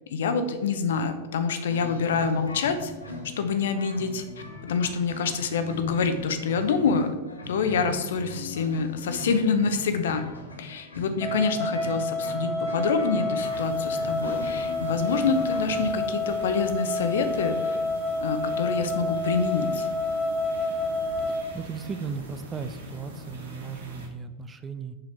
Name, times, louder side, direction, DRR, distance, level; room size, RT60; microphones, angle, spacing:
voice 1, 0.1-2.9 3.4-4.2 4.6-7.1 7.5-10.3 10.6-17.8 18.2-19.9, left 5 dB, 60° left, 9 dB, 0.8 m, -26 dB
sound 1, 1.7-15.9, left 2 dB, 75° left, 1.1 m, -40 dB
sound 2, 11.2-21.4, left 2 dB, 15° left, 1.6 m, -29 dB
sound 3, 13.4-24.1, left 1 dB, 65° right, 1.7 m, -43 dB
voice 2, 21.2-25.0, right 6 dB, 15° right, 10 dB, 0.5 m, -36 dB
6.8 x 5.5 x 4.4 m, 1.2 s
figure-of-eight pair, 90°, 0 cm